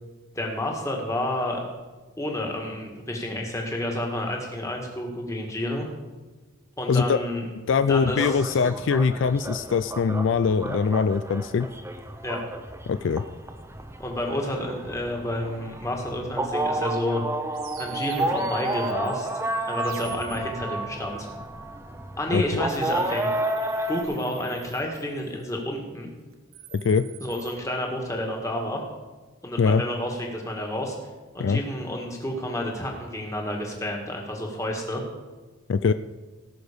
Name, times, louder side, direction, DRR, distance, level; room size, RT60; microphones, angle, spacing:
voice 1, 0.4-1.6 2.2-5.9 6.8-7.5 7.9-8.4 12.2-12.4 14.0-17.2 17.8-19.3 19.7-21.3 22.2-23.3 23.9-26.1 27.2-28.8 29.4-31.0 31.3-35.0, left 1 dB, 15° left, 1 dB, 1.8 m, -30 dB
voice 2, 7.7-11.7 12.9-13.2 22.3-22.7 26.7-27.1 29.6-29.8 31.4-31.6 35.7-35.9, left 5 dB, 65° left, 12 dB, 0.3 m, -22 dB
sound 1, 7.9-24.0, right 2 dB, 10° right, 0.6 m, -31 dB
sound 2, 17.5-20.4 22.7-25.5 26.3-27.6, right 5 dB, 85° right, 1.6 m, -44 dB
18.0 x 6.2 x 5.1 m, 1.3 s
head